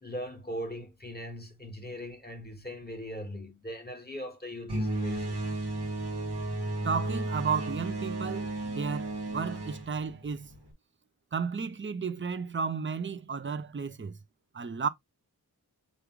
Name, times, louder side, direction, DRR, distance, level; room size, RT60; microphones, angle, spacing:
voice 1, 0.0-5.4, equal, 25° left, 1.5 m, -40 dB
sound 1, 4.7-10.7, right 2 dB, 80° right, 1.2 m, -33 dB
voice 2, 6.8-10.5 11.3-14.2 14.5-14.9, right 5 dB, 30° right, 0.5 m, -33 dB
3.5 x 2.5 x 4.6 m
wide cardioid pair, 45°, 39 cm